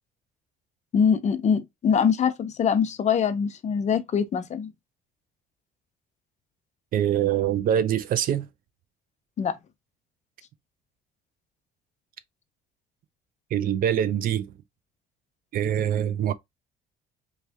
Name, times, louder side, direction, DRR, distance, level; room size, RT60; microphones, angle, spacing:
voice 1, 0.9-4.7 9.4-9.6, left 7 dB, 45° left, 0.7 m, -23 dB
voice 2, 6.9-8.5 13.5-14.5 15.5-16.3, right 10 dB, 55° right, 0.5 m, -24 dB
3.2 x 2.7 x 3.4 m
cardioid pair, 110°, 17 cm